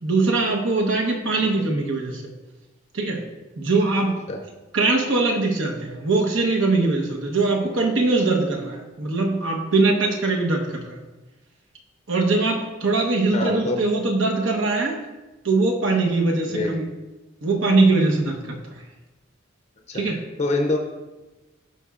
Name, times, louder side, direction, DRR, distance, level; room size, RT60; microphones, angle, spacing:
voice 1, 0.0-2.2 2.9-3.2 3.6-4.2 4.7-11.0 12.1-15.0 15.4-16.9 17.4-18.6 19.9-20.2, right 3 dB, 75° right, 1 dB, 1.1 m, -21 dB
voice 2, 13.3-13.8 16.5-16.7 19.9-20.0 20.4-20.8, left 2 dB, 35° left, 2 dB, 0.5 m, -24 dB
12.0 x 4.2 x 2.4 m, 1.1 s
head